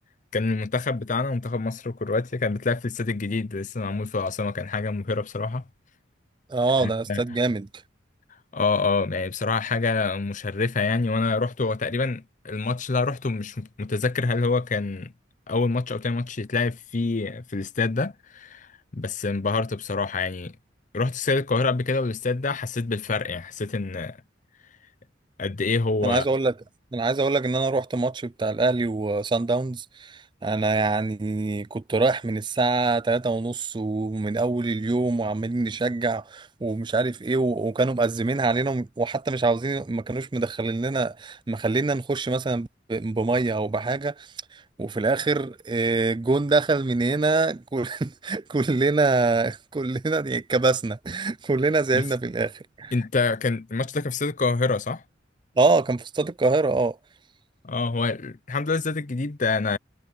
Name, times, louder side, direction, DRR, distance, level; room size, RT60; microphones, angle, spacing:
voice 1, 0.3-5.6 6.8-7.2 8.5-15.1 15.5-20.5 20.9-24.2 25.4-26.2 51.9-52.0 52.9-55.0 57.6-59.8, left 3 dB, 40° left, 0.7 m, -26 dB
voice 2, 6.5-7.7 26.0-26.5 26.9-52.9 55.6-57.0, right 3 dB, 25° right, 0.4 m, -24 dB
head